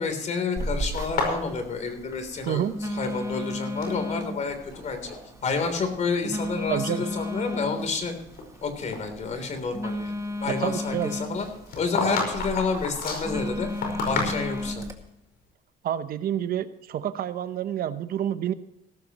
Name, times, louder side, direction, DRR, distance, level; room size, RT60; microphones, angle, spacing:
voice 1, 0.0-2.7 3.0-5.1 5.4-8.1 8.6-10.1 10.4-11.5 11.7-13.7 14.1-14.9, left 4 dB, 45° left, 7 dB, 3.5 m, -29 dB
Telephone, 0.6-14.9, left 1 dB, 20° right, 2.0 m, -34 dB
sound 1, 1.0-3.0 3.2-4.0 4.6-5.2 5.5-5.8 6.4-6.5 7.1-8.6 8.9-9.0 11.3-14.8, left 3 dB, 65° left, 5.1 m, -32 dB
voice 2, 6.7-7.0 10.5-11.1 15.8-18.5, right 10 dB, 60° right, 12 dB, 0.9 m, -28 dB
17.0 x 14.0 x 3.1 m, 0.86 s
cardioid pair, 110°, 17 cm